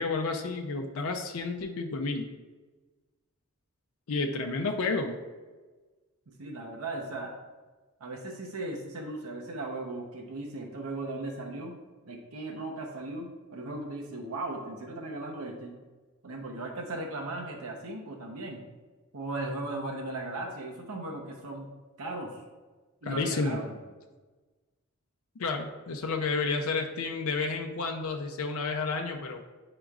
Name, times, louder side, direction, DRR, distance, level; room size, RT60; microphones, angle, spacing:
voice 1, 0.0-2.3 4.1-5.2 23.0-23.6 25.4-29.4, left 3 dB, 75° left, 3 dB, 0.5 m, -31 dB
voice 2, 6.3-7.3 8.0-11.8 12.1-15.7 16.2-18.6 19.1-21.7 22.0-22.4 23.0-23.7, right 2 dB, 85° right, 1 dB, 0.8 m, -37 dB
8.9 x 4.9 x 2.4 m, 1.3 s
head